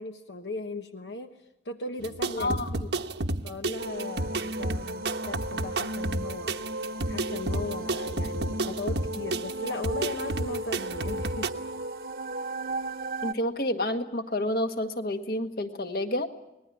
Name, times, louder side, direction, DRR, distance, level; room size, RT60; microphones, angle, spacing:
voice 1, 0.0-1.4 1.6-2.9 3.4-6.6 7.1-11.7, left 2 dB, 75° left, 6 dB, 1.1 m, -37 dB
sound 1, 2.0-11.5, right 2 dB, 75° right, 1.1 m, -32 dB
voice 2, 2.4-2.7 13.2-16.3, left 1 dB, 55° left, 7 dB, 1.7 m, -29 dB
sound 2, 3.8-13.3, right 1 dB, 55° right, 1.0 m, -35 dB
25.0 x 20.0 x 10.0 m, 0.91 s
head